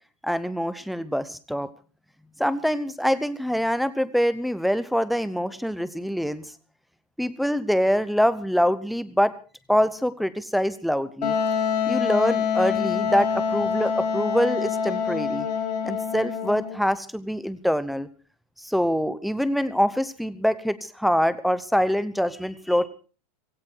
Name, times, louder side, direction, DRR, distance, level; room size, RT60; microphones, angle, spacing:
voice 1, 0.2-1.7 2.4-6.4 7.2-9.3 9.7-11.3 11.9-15.5 15.8-18.1 18.6-22.9, equal, ahead, 14 dB, 0.8 m, -24 dB
Wind instrument woodwind instrument, 11.2-16.8, left 6 dB, 80° left, 6.6 m, -26 dB
16.5 x 16.5 x 4.6 m, 0.38 s
hypercardioid pair, 130°, 21 cm